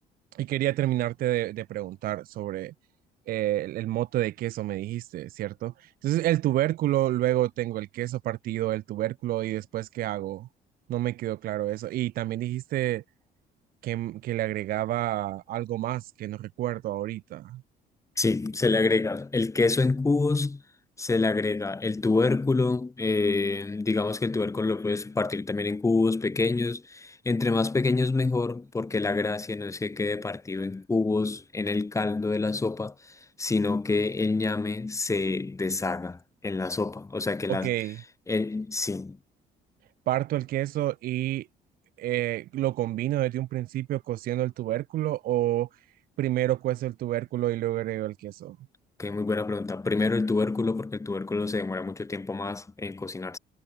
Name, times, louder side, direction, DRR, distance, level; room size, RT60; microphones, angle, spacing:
voice 1, 0.3-2.7 3.3-10.5 10.9-13.0 13.8-17.6 37.5-38.0 40.1-41.5 42.0-45.7 46.2-48.6, right 14 dB, 60° right, 0.5 m, -29 dB
voice 2, 18.2-20.6 21.0-37.7 38.3-39.2 49.0-53.4, left 3 dB, 20° left, 2.6 m, -27 dB
cardioid pair, 110°, 17 cm